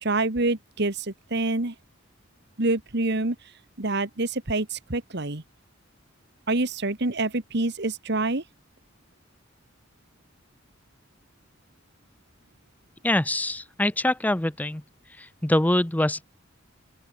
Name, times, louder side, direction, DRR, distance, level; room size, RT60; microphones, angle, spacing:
voice 1, 0.0-1.7 2.6-3.4 3.8-5.4 6.5-8.4, right 2 dB, 60° right, 1.9 m, -26 dB
voice 2, 13.0-14.8 15.4-16.2, left 1 dB, 10° left, 0.6 m, -24 dB
open air
head